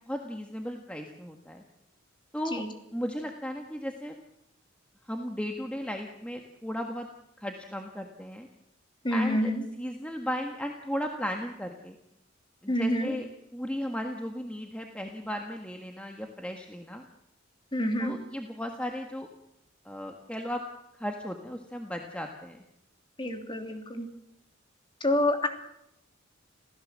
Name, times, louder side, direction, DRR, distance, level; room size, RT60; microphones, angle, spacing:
voice 1, 0.1-1.6 2.3-2.6 2.9-4.1 5.1-7.1 7.4-8.5 9.1-9.5 9.8-12.0 12.6-13.3 13.5-17.0 18.0-19.3 19.8-20.6 21.0-22.6, equal, 5° left, 3 dB, 1.6 m, -35 dB
voice 2, 9.0-9.6 12.7-13.1 17.7-18.1 23.2-24.1 25.0-25.5, left 1 dB, 25° left, 5 dB, 2.9 m, -27 dB
27.5 x 16.0 x 7.6 m, 0.81 s
head